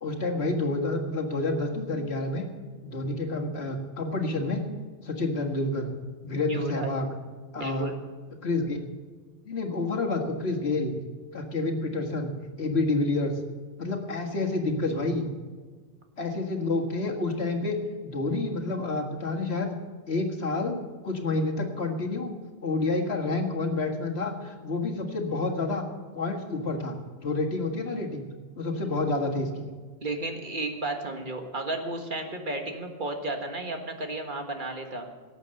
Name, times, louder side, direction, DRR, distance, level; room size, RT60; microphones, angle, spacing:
voice 1, 0.0-2.5 2.8-4.7 5.0-5.9 6.2-7.1 7.5-7.9 8.4-8.8 9.5-11.0 11.3-12.3 12.6-13.3 13.8-15.3 16.2-17.8 18.0-19.8 20.1-20.8 21.0-22.3 22.6-25.8 26.1-28.3 28.6-29.7, left 2 dB, 85° left, 2 dB, 2.0 m, -29 dB
voice 2, 6.5-6.9 7.6-8.0 30.0-35.1, right 2 dB, 55° right, 3 dB, 1.7 m, -33 dB
18.0 x 8.2 x 6.6 m, 1.4 s
omnidirectional pair, 1.0 m